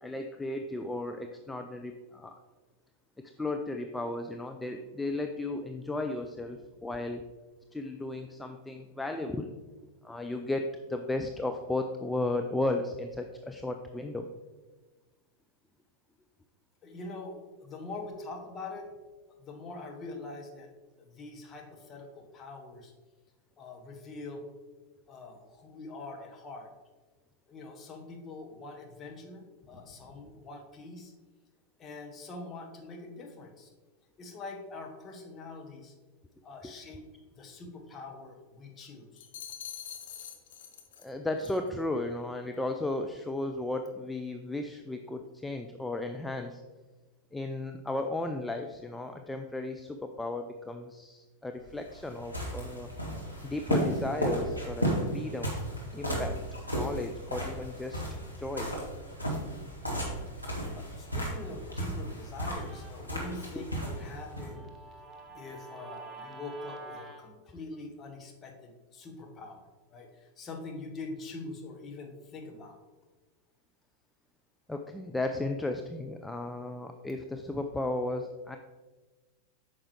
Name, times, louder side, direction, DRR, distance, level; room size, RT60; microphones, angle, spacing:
voice 1, 0.0-2.4 3.4-7.3 7.7-9.5 10.0-14.3 36.6-36.7 41.0-46.6 47.3-52.9 53.4-55.6 55.9-56.4 56.7-58.0 58.4-58.7 63.6-63.7 74.7-78.6, left 2 dB, 5° left, 5 dB, 0.4 m, -35 dB
voice 2, 16.8-18.9 19.4-20.7 21.0-22.9 23.6-24.4 25.1-26.7 27.5-31.1 31.8-33.7 34.2-35.9 36.4-37.0 37.4-39.3 60.2-60.3 60.7-64.7 65.3-72.8, left 3 dB, 25° left, 2 dB, 1.2 m, -44 dB
sound 1, 39.2-41.1 41.4-41.7, left 9 dB, 60° left, 0.8 m, -44 dB
sound 2, 51.6-64.5, right 1 dB, 90° left, 1.8 m, -34 dB
Guitar, 61.7-67.2, right 3 dB, 15° right, 1.0 m, -49 dB
8.7 x 6.0 x 3.2 m, 1.3 s
figure-of-eight pair, 90°, 0 cm